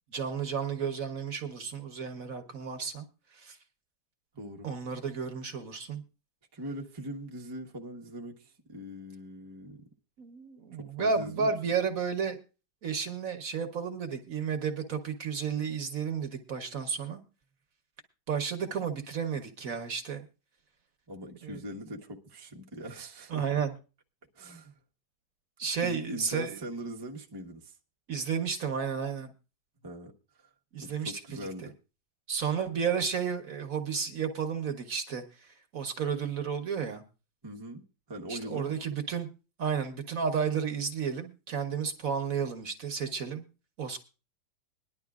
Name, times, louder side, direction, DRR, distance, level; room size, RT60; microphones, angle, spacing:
voice 1, 0.1-3.0 3.3-3.6 4.6-6.0 10.2-12.4 12.8-17.2 18.3-20.2 21.4-21.6 23.3-23.7 25.6-26.6 28.1-29.3 30.7-31.7 32.3-37.0 38.3-39.3 39.6-43.4 43.8-44.0, right 6 dB, 55° right, 7 dB, 1.3 m, -32 dB
voice 2, 4.3-4.7 6.5-9.9 10.8-11.5 21.1-23.6 24.3-24.8 25.8-27.8 29.8-30.1 30.4-30.5 30.8-31.7 37.4-37.8 38.1-38.7, right 1 dB, 20° right, 0 dB, 0.8 m, -41 dB
21.0 x 11.0 x 2.4 m, 0.32 s
omnidirectional pair, 2.0 m